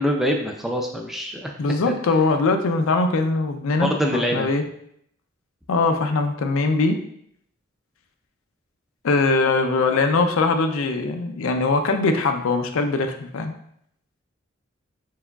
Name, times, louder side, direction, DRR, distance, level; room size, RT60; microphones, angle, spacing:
voice 1, 0.0-1.5 1.9-2.0 3.8-4.5, equal, ahead, 1 dB, 0.3 m, -24 dB
voice 2, 1.6-4.6 5.7-7.0 9.0-13.5, left 3 dB, 85° left, 6 dB, 0.4 m, -21 dB
4.7 x 3.8 x 2.3 m, 0.71 s
head